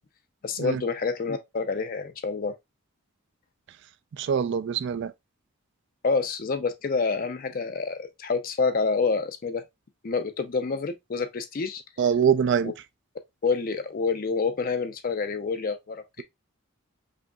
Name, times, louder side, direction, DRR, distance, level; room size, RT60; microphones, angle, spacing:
voice 1, 0.4-2.5 6.0-9.6 10.0-11.8 12.6-12.7 13.4-16.2, left 4 dB, 40° left, 0.4 m, -28 dB
voice 2, 4.2-5.1 12.0-12.7, right 7 dB, 55° right, 0.3 m, -24 dB
4.9 x 2.8 x 2.2 m
head